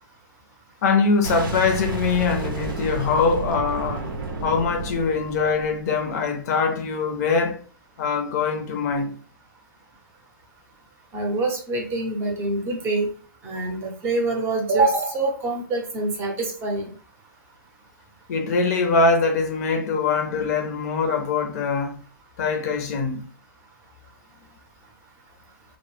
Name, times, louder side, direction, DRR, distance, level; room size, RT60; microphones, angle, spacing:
voice 1, 0.8-4.1 4.4-7.6 8.0-9.2 18.3-22.0 22.4-23.3, left 4 dB, 45° left, 0.5 m, -23 dB
Boom, 1.2-6.1, right 4 dB, 75° right, 0.7 m, -31 dB
voice 2, 11.1-13.1 13.4-16.9, right 2 dB, 20° right, 0.6 m, -25 dB
2.1 x 2.1 x 3.1 m
hypercardioid pair, 135°, 12 cm